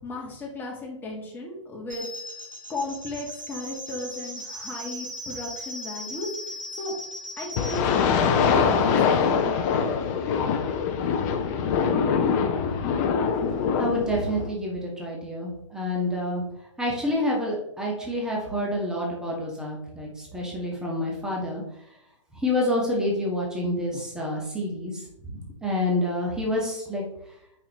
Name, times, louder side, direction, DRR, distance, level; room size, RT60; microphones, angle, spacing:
voice 1, 0.0-2.1 2.7-6.3 6.7-7.0 7.4-9.4, left 2 dB, 10° left, -3 dB, 2.4 m, -35 dB
sound 1, 1.9-7.8, equal, 75° right, 2.1 m, -38 dB
sound 2, 7.6-14.5, left 6 dB, 30° left, 0.9 m, -23 dB
voice 2, 13.8-16.4 16.8-21.6 22.4-25.0 25.3-27.0, left 1 dB, 5° right, -3 dB, 2.0 m, -28 dB
8.8 x 5.8 x 3.3 m, 0.77 s
figure-of-eight pair, 115°, 16 cm